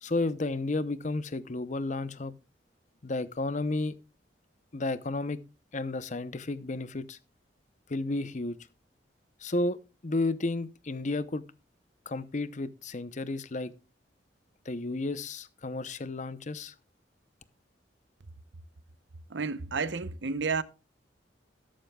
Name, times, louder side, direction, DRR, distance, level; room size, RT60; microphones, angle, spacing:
voice 1, 0.0-2.3 3.0-4.0 4.7-5.4 5.7-7.2 7.9-8.6 9.4-9.8 10.0-11.4 12.1-13.7 14.6-16.7, left 2 dB, 45° left, 0.7 m, -32 dB
voice 2, 19.3-20.6, right 4 dB, 90° right, 0.7 m, -31 dB
13.0 x 11.5 x 2.3 m
head